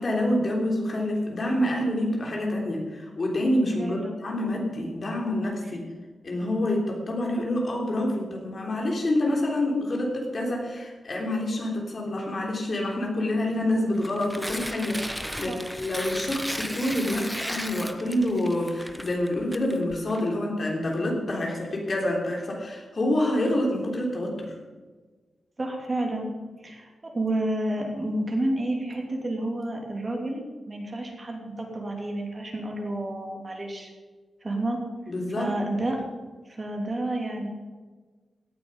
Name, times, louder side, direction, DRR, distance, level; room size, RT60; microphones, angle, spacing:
voice 1, 0.0-5.8 6.2-24.5 35.1-35.5, left 1 dB, 45° left, -1 dB, 3.4 m, -27 dB
voice 2, 3.8-4.2 15.5-15.7 25.6-26.3 26.6-33.9 34.4-34.8 35.3-36.0 36.4-37.5, right 1 dB, 30° right, 0 dB, 3.0 m, -30 dB
Tearing, 13.9-20.2, equal, ahead, 1.0 m, -35 dB
17.5 x 8.9 x 5.6 m, 1.4 s
wide cardioid pair, 110°, 0 cm